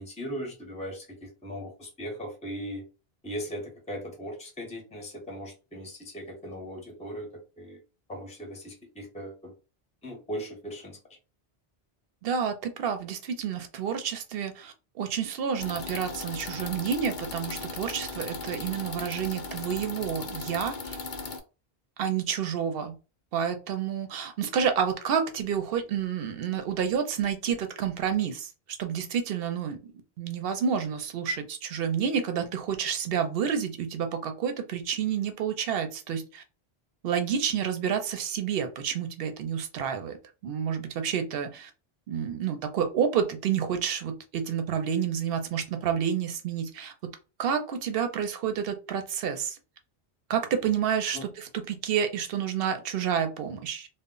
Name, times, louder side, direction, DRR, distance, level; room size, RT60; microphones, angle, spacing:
voice 1, 0.0-2.8 3.2-7.8 8.1-9.5 10.0-11.0 51.1-51.3, equal, 10° left, 0.6 m, -38 dB
voice 2, 12.2-21.0 22.0-23.0 23.3-28.5 28.8-29.8 30.2-36.4 37.0-40.2 40.4-41.7 42.1-47.1 47.4-49.6 50.3-53.9, right 7 dB, 70° right, 0.8 m, -29 dB
sound 1, 15.6-21.4, left 4 dB, 60° left, 0.6 m, -37 dB
2.1 x 2.1 x 3.7 m
omnidirectional pair, 1.0 m